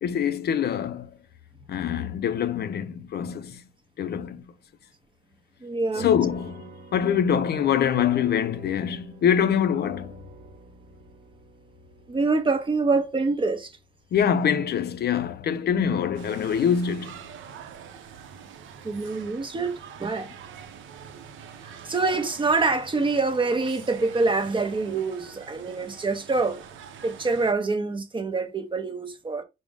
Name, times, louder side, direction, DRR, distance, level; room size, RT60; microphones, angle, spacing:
voice 1, 0.0-1.1 1.7-3.6 4.0-4.4 6.0-10.2 14.1-17.1, left 8 dB, 55° left, 0.4 m, -24 dB
voice 2, 5.6-6.1 12.1-13.7 18.8-20.3 21.6-26.6 27.0-29.4, right 3 dB, 25° right, 0.7 m, -25 dB
sound 1, 5.9-14.7, right 1 dB, 45° right, 0.9 m, -45 dB
sound 2, 16.1-27.5, right 7 dB, 75° right, 0.6 m, -45 dB
4.8 x 2.0 x 3.5 m
cardioid pair, 90°, 20 cm